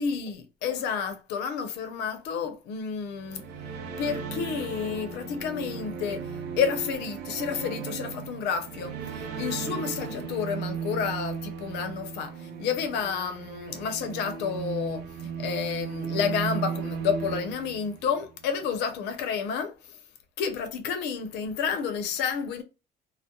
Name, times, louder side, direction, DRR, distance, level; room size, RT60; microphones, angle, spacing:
voice 1, 0.0-3.5 4.0-20.0 20.4-22.6, left 6 dB, 90° left, 0.6 m, -30 dB
sound 1, 3.1-18.3, right 7 dB, 80° right, 0.5 m, -36 dB
2.2 x 2.0 x 2.7 m
cardioid pair, 110°, 17 cm